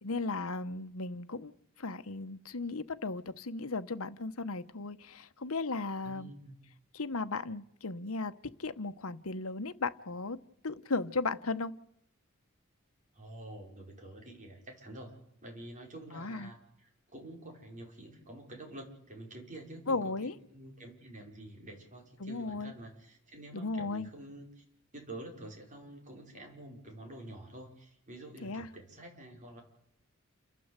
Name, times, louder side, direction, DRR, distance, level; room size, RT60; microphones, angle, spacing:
voice 1, 0.0-1.5 1.8-6.3 6.9-8.3 8.6-10.4 10.6-11.7 16.1-16.5 19.9-20.4 22.2-22.7 23.5-24.1 28.4-28.7, left 3 dB, 80° left, 1.1 m, -36 dB
voice 2, 6.0-6.6 13.1-15.2 15.4-24.6 24.9-29.6, right 1 dB, 35° right, 5.6 m, -48 dB
29.0 x 12.0 x 8.2 m
head